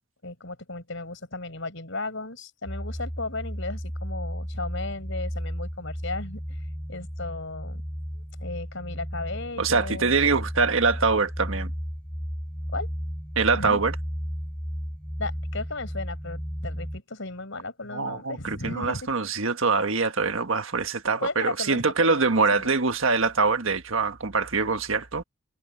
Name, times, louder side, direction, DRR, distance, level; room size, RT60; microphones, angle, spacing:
voice 1, 0.2-6.4 6.9-7.8 8.1-10.2 12.7-12.9 13.6-13.8 15.2-19.1 21.2-22.7, left 3 dB, 65° left, 6.1 m, -35 dB
sound 1, 2.7-17.0, equal, 5° left, 3.5 m, -34 dB
voice 2, 9.6-11.7 13.3-13.9 17.9-25.2, right 4 dB, 70° right, 1.6 m, -24 dB
head